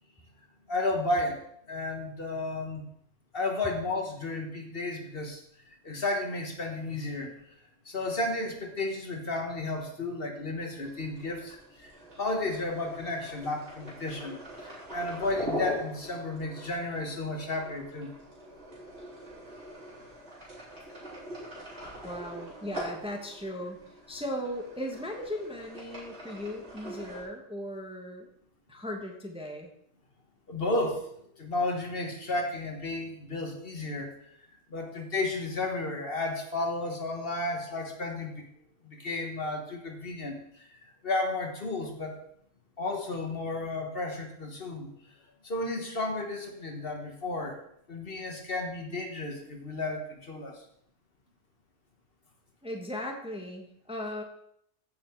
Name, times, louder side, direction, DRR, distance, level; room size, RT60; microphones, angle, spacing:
voice 1, 0.7-1.4 1.7-2.8 3.3-5.4 5.8-7.3 7.8-18.2 30.5-31.1 31.4-34.3 34.7-38.5 38.8-40.7 41.0-42.2 42.8-44.9 45.4-47.6 47.9-50.6, left 2 dB, 50° left, 3 dB, 1.6 m, -33 dB
sound 1, 10.8-27.2, equal, 60° right, 4.1 m, -42 dB
voice 2, 22.0-23.8 24.1-28.3 28.7-29.7 52.6-54.2, left 1 dB, 5° right, 2 dB, 1.1 m, -37 dB
15.0 x 5.8 x 4.5 m, 0.71 s
omnidirectional pair, 1.3 m